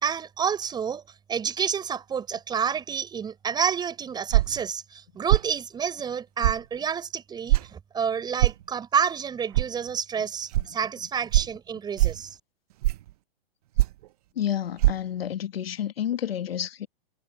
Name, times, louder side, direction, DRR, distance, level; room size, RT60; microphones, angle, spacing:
voice 1, 0.0-1.0 1.3-12.3, right 7 dB, 15° right, 5.1 m, -29 dB
sound 1, 4.3-4.6 5.3-5.5 6.4-6.6 7.5-7.7 8.4-8.6 9.5-9.7 10.5-10.6 11.3-11.5 12.0-12.2 12.8-13.1 13.8-14.0 14.8-14.9, right 17 dB, 40° right, 0.5 m, -21 dB
voice 2, 14.4-16.9, left 10 dB, 80° left, 1.5 m, -30 dB
hypercardioid pair, 145°, 30 cm